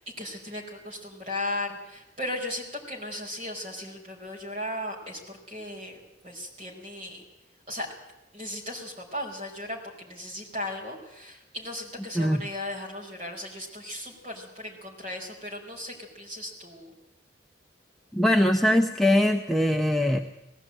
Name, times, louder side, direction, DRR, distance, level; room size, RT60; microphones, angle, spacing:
voice 1, 0.0-7.2 7.7-7.9 8.3-16.9, left 1 dB, 30° right, -1 dB, 4.9 m, -36 dB
voice 2, 18.1-20.2, left 1 dB, ahead, 2 dB, 0.7 m, -22 dB
19.5 x 16.0 x 8.9 m, 0.94 s
head